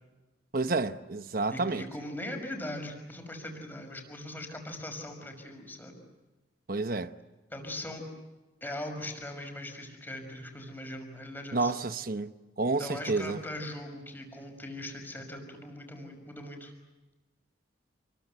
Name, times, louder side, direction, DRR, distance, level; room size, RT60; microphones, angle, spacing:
voice 1, 0.5-1.8 6.7-7.1 11.5-12.3 12.6-13.4, right 3 dB, 50° right, 1.0 m, -29 dB
voice 2, 1.5-5.9 7.5-8.0 8.6-11.7 12.7-16.7, left 1 dB, 10° left, 5.9 m, -40 dB
30.0 x 23.0 x 8.1 m
head